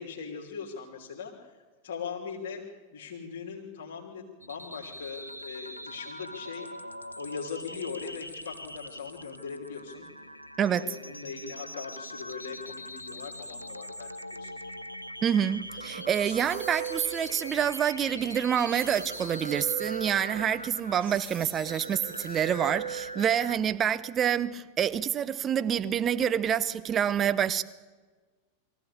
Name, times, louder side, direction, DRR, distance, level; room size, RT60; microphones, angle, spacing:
voice 1, 0.0-1.5 1.8-2.6 2.9-6.7 7.1-10.1 10.6-14.8, left 6 dB, 60° left, -2 dB, 3.1 m, -40 dB
sound 1, 4.4-23.6, left 1 dB, 85° left, 0.7 m, -42 dB
voice 2, 10.6-10.9 15.2-27.6, right 9 dB, 25° right, 12 dB, 0.9 m, -27 dB
Guitar, 15.4-17.9 18.7-24.1, right 10 dB, 60° right, 1.7 m, -40 dB
sound 2, 15.8-23.1, right 1 dB, 80° right, 6.9 m, -49 dB
23.0 x 15.0 x 8.4 m, 1.4 s
figure-of-eight pair, 90°, 0 cm